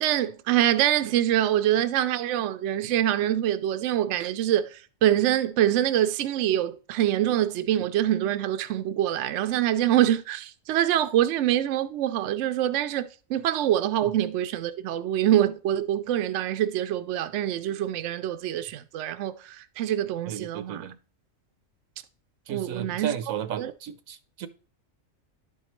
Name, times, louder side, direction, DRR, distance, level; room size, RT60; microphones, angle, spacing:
voice 1, 0.0-20.8 22.5-23.7, right 12 dB, 70° right, 0.8 m, -25 dB
voice 2, 20.3-21.0 22.5-24.5, right 9 dB, 85° right, 1.1 m, -34 dB
11.0 x 4.7 x 3.0 m
omnidirectional pair, 1.4 m